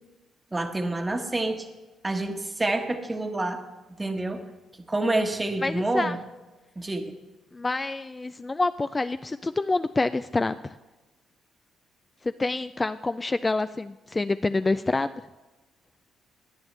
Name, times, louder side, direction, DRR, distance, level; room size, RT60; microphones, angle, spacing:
voice 1, 0.5-1.7 2.0-3.6 4.0-4.4 4.9-6.2 6.8-7.1, right 2 dB, 20° right, 5 dB, 1.2 m, -28 dB
voice 2, 5.6-6.2 7.5-10.8 12.2-15.1, left 3 dB, 20° left, 11 dB, 0.3 m, -27 dB
17.5 x 9.3 x 3.3 m, 1.1 s
cardioid pair, 90°, 0 cm